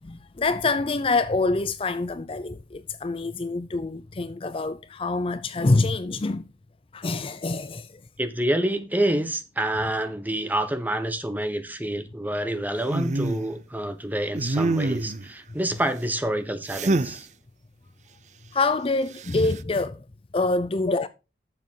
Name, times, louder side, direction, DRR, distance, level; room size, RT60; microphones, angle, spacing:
voice 1, 0.0-6.5 6.9-8.0 18.5-20.0 20.3-21.1, left 3 dB, 30° left, 0.5 m, -26 dB
voice 2, 8.2-17.3, right 1 dB, 10° right, 1.1 m, -27 dB
sound 1, 12.9-13.5 14.3-15.3 16.7-17.2 19.2-19.6, right 2 dB, 40° right, 0.6 m, -26 dB
12.0 x 7.3 x 3.8 m
head